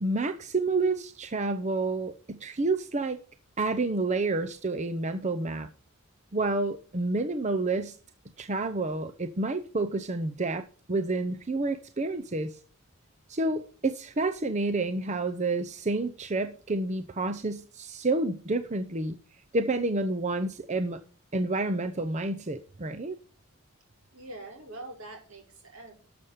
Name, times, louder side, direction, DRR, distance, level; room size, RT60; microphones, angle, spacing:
voice 1, 0.0-3.2 3.6-5.7 6.3-8.0 8.4-12.6 13.3-19.2 19.5-21.0 21.3-23.2, right 2 dB, 35° right, 0.7 m, -29 dB
voice 2, 24.1-26.0, right 2 dB, 85° right, 5.3 m, -44 dB
12.5 x 6.9 x 5.6 m
head